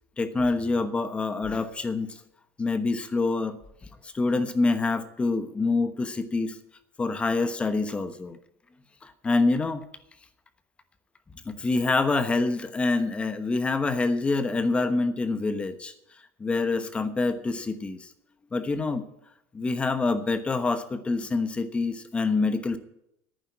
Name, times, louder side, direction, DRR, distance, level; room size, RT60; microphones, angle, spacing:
voice 1, 0.2-2.1 2.6-3.6 4.0-6.6 7.0-8.4 9.0-9.8 11.4-15.9 16.4-18.1 18.5-19.0 19.5-22.8, left 3 dB, 15° left, 11 dB, 1.1 m, -26 dB
11.0 x 9.3 x 9.4 m, 0.81 s
supercardioid pair, 135°, 7 cm